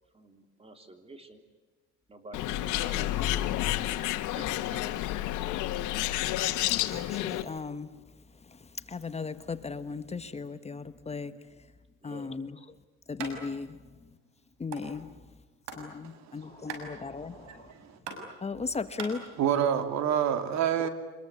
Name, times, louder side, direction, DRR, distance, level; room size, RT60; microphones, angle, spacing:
voice 1, 0.1-1.4 2.1-3.5 3.9-4.0 4.3-4.9 12.0-12.3, right 2 dB, 20° right, 3.4 m, -48 dB
Bird, 2.3-7.4, left 15 dB, 80° left, 1.8 m, -30 dB
voice 2, 6.9-7.9 8.9-11.3 12.0-12.6 13.1-13.8 14.6-15.1 15.8-17.7 18.4-19.2, left 4 dB, 20° left, 1.4 m, -36 dB
sound 1, 13.2-13.3 13.7-13.8 14.0-14.8 15.3-19.1, right 6 dB, 85° right, 6.3 m, -41 dB
voice 3, 16.7-18.0 19.4-20.9, right 9 dB, 65° right, 2.9 m, -29 dB
26.0 x 22.0 x 9.8 m
cardioid pair, 110°, 30 cm